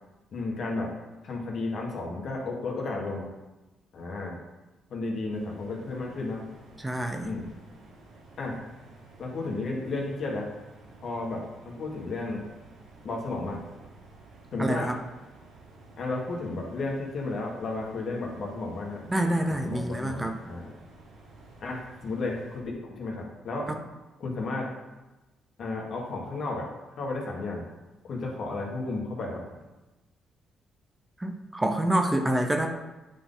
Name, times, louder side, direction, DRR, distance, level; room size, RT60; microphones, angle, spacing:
voice 1, 0.3-0.9 1.2-3.2 3.9-4.4 4.9-6.4 7.2-7.5 8.4-8.6 9.2-10.5 11.0-12.4 13.0-13.6 14.5-14.9 16.0-19.0 19.6-20.7 21.6-23.7 24.2-24.7 25.6-26.7 27.0-27.7 28.0-29.6, left 3 dB, 60° left, -1 dB, 1.6 m, -33 dB
sound 1, 5.3-22.6, right 2 dB, 90° right, 1.4 m, -52 dB
voice 2, 6.8-7.3 14.6-15.0 19.1-20.4 31.2-32.7, right 1 dB, 15° right, 4 dB, 0.7 m, -27 dB
9.1 x 4.1 x 3.9 m, 1.1 s
cardioid pair, 90°, 0 cm